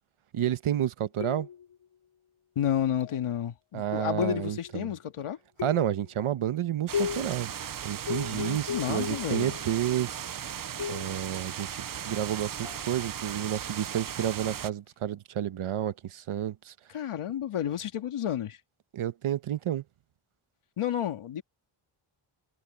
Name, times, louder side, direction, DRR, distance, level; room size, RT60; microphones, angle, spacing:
voice 1, 0.3-1.5 3.7-4.9 5.6-7.5 7.8-10.5 10.9-16.7 18.9-19.8, right 11 dB, 75° right, 1.2 m, -30 dB
sound 1, 1.2-1.7 3.0-3.4 4.2-4.8 5.6-6.1 6.9-7.4 8.1-9.7 10.8-11.2 12.6-12.9, left 7 dB, 65° left, 3.7 m, -35 dB
voice 2, 2.6-5.4 8.3-9.6 16.9-18.6 20.8-21.4, left 10 dB, 80° left, 1.9 m, -31 dB
sound 2, 6.9-14.7, right 9 dB, 45° right, 0.6 m, -37 dB
wide cardioid pair, 175°, 50 cm